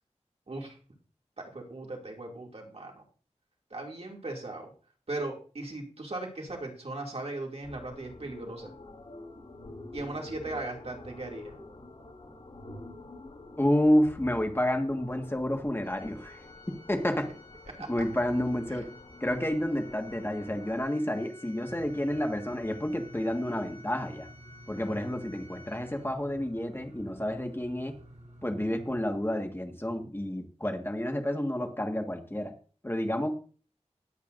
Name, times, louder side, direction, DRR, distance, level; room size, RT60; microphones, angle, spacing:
voice 1, 0.5-0.8 1.4-3.0 3.7-4.7 5.1-8.7 9.9-11.5 17.8-17.9 18.7-18.8, right 2 dB, 60° right, 0 dB, 2.6 m, -38 dB
sound 1, 7.6-20.8, left 2 dB, 70° left, 4.2 m, -48 dB
voice 2, 13.6-16.4 16.9-17.3 17.9-18.9 19.2-24.3 24.7-27.9 28.4-32.5 32.8-33.3, left 1 dB, 20° left, 4 dB, 1.6 m, -29 dB
Organ, 15.8-26.4, left 2 dB, 40° left, 5.3 m, -54 dB
sound 2, 21.7-29.1, right 1 dB, 85° right, 6.0 m, -51 dB
19.5 x 8.3 x 2.6 m, 0.39 s
wide cardioid pair, 70°, 12 cm